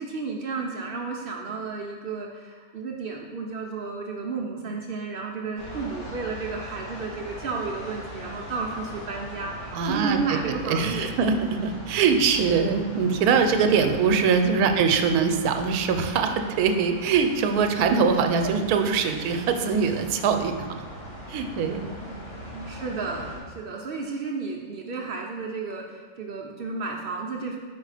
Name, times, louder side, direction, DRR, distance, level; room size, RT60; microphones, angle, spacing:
voice 1, 0.0-11.1 13.7-13.9 22.6-27.6, right 4 dB, 60° right, -1 dB, 0.6 m, -32 dB
sound 1, 5.6-23.4, equal, 50° left, 1.7 m, -40 dB
voice 2, 9.7-10.4 10.6-20.5 21.3-21.9, right 5 dB, 85° right, 6 dB, 1.1 m, -23 dB
4.9 x 4.4 x 4.8 m, 1.5 s
omnidirectional pair, 1.6 m